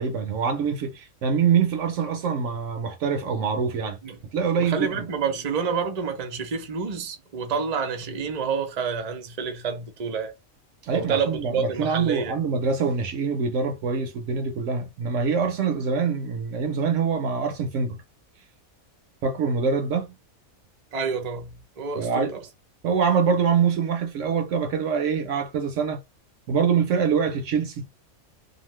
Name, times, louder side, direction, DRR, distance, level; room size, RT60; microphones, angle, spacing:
voice 1, 0.0-4.0 4.3-5.1 10.8-18.0 19.2-20.1 22.0-22.3 22.8-26.0 26.5-27.8, right 6 dB, 70° right, 0.8 m, -24 dB
voice 2, 4.6-10.3 10.9-12.4 20.9-22.5, right 5 dB, 45° right, 0.5 m, -28 dB
2.6 x 2.4 x 3.0 m
omnidirectional pair, 1.5 m